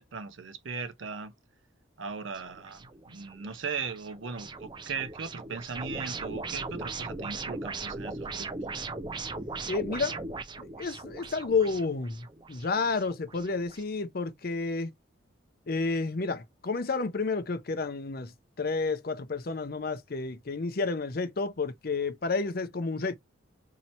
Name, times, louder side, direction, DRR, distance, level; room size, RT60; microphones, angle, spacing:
voice 1, 0.0-1.3 2.0-8.5, right 5 dB, 75° right, 0.6 m, -38 dB
sound 1, 2.3-13.8, right 3 dB, 25° right, 0.4 m, -39 dB
voice 2, 9.7-10.2 10.6-14.9 15.7-18.3 18.6-23.2, left 4 dB, 50° left, 0.6 m, -30 dB
2.8 x 2.8 x 4.2 m
head